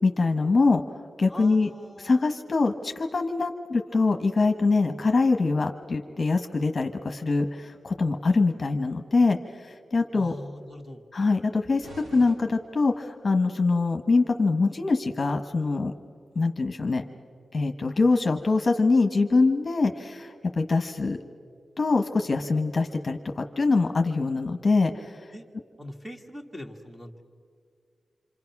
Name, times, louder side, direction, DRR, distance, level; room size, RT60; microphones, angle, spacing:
voice 1, 0.0-0.8 1.2-1.7 2.0-10.3 11.1-15.9 16.3-17.1 17.5-21.2 21.8-25.2, left 3 dB, 40° left, 6 dB, 1.1 m, -24 dB
voice 2, 1.3-2.3 10.1-11.0 25.3-25.5 25.8-27.2, left 1 dB, 5° right, 3 dB, 1.9 m, -42 dB
sound 1, 11.8-13.3, right 1 dB, 75° right, 2.9 m, -46 dB
27.0 x 26.5 x 6.0 m, 2.1 s
wide cardioid pair, 110°, 0 cm